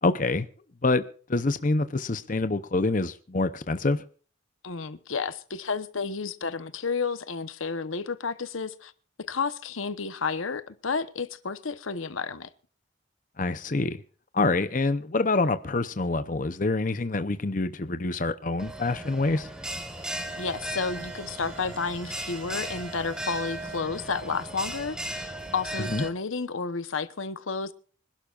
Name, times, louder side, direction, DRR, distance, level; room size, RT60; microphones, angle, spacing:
voice 1, 0.0-0.5 0.8-1.0 1.3-4.0 13.4-14.0 14.3-19.5 25.9-26.0, left 3 dB, 40° left, 0.7 m, -26 dB
voice 2, 4.6-8.9 9.3-12.5 20.4-27.7, left 4 dB, 85° left, 1.0 m, -31 dB
Bell, 18.6-26.1, right 1 dB, 5° right, 1.6 m, -37 dB
sound 1, 19.6-23.8, right 4 dB, 70° right, 3.2 m, -48 dB
25.5 x 11.5 x 2.5 m
head